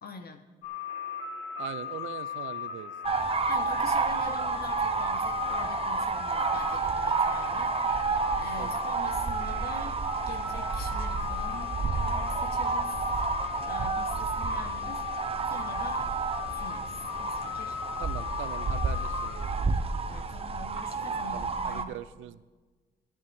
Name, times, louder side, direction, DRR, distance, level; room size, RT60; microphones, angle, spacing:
voice 1, 0.0-0.5 3.1-8.0 8.4-10.0 10.2-12.9 13.7-15.0 15.5-16.1 16.5-17.8 20.0-22.0, left 4 dB, 50° left, 7 dB, 1.2 m, -44 dB
sound 1, 0.6-19.4, left 6 dB, 85° left, 4.1 m, -36 dB
voice 2, 1.6-2.9 8.6-8.8 18.0-19.7 21.3-22.4, right 13 dB, 85° right, 15 dB, 0.6 m, -41 dB
sound 2, 3.0-21.8, right 4 dB, 30° right, 0.9 m, -30 dB
17.5 x 13.0 x 3.6 m, 1.3 s
cardioid pair, 90°, 20 cm